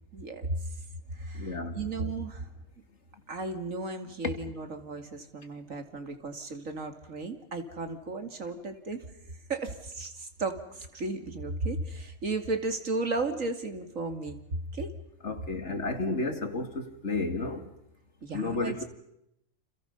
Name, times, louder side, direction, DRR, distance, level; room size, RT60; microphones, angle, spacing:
voice 1, 0.1-0.8 1.1-2.5 3.3-9.1 9.5-14.4 14.7-14.9 18.2-18.8, right 3 dB, 90° right, 3.1 m, -34 dB
voice 2, 1.4-1.8 15.2-17.6 18.3-18.8, left 3 dB, 60° left, 2.7 m, -32 dB
29.5 x 28.5 x 5.5 m
omnidirectional pair, 1.3 m